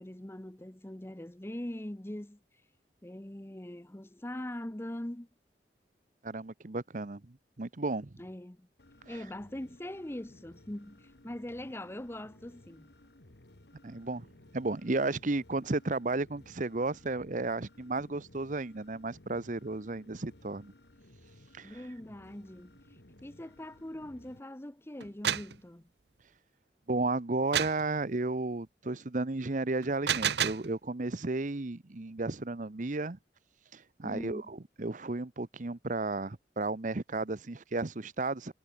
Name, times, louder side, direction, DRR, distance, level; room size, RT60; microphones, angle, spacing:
voice 1, 0.0-2.4 3.0-5.3 8.2-8.7 9.1-12.9 21.6-22.7 23.2-25.9 34.0-34.4, left 1 dB, 15° left, 0.8 m, -42 dB
voice 2, 6.2-8.1 9.1-9.2 13.8-14.3 14.5-20.7 21.5-21.8 26.9-33.2 33.7-38.5, right 2 dB, 45° right, 0.9 m, -33 dB
sound 1, 8.8-24.4, left 1 dB, 70° left, 2.2 m, -58 dB
sound 2, 25.0-25.6 27.5-27.8 29.8-30.7, right 9 dB, 75° right, 0.9 m, -30 dB
head